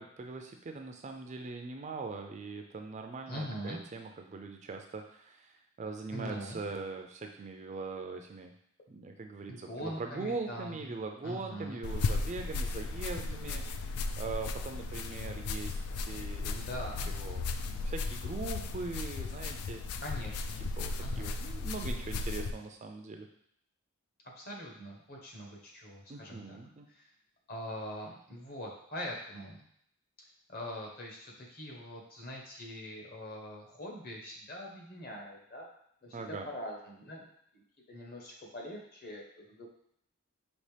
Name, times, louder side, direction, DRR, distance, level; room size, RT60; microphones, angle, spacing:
voice 1, 0.0-8.5 8.9-13.6 14.2-16.8 17.2-19.8 20.8-23.3 26.1-26.9 36.1-36.5, right 3 dB, 30° right, 4 dB, 0.3 m, -41 dB
voice 2, 3.3-3.8 6.1-6.6 9.5-10.9 11.2-11.8 16.4-17.1 20.0-20.6 21.0-21.4 24.4-26.6 26.9-27.1 27.5-29.6 30.5-35.7 36.0-37.2 37.5-37.6 37.9-39.7, equal, 45° left, -1 dB, 1.0 m, -43 dB
sound 1, 11.8-22.5, left 3 dB, 80° left, 0.3 m, -35 dB
5.4 x 2.9 x 3.3 m, 0.70 s
head